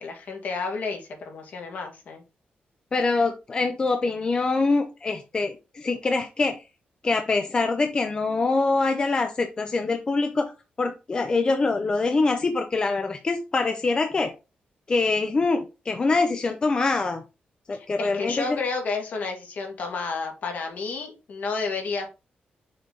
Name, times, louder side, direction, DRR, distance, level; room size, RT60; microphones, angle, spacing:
voice 1, 0.0-2.2 17.7-22.1, left 4 dB, 60° left, 2 dB, 1.9 m, -31 dB
voice 2, 2.9-6.6 7.0-10.5 10.8-14.3 14.9-17.2 17.7-18.6, left 3 dB, 25° left, 6 dB, 0.6 m, -24 dB
6.6 x 4.0 x 3.9 m, 0.28 s
wide cardioid pair, 165°, 3 cm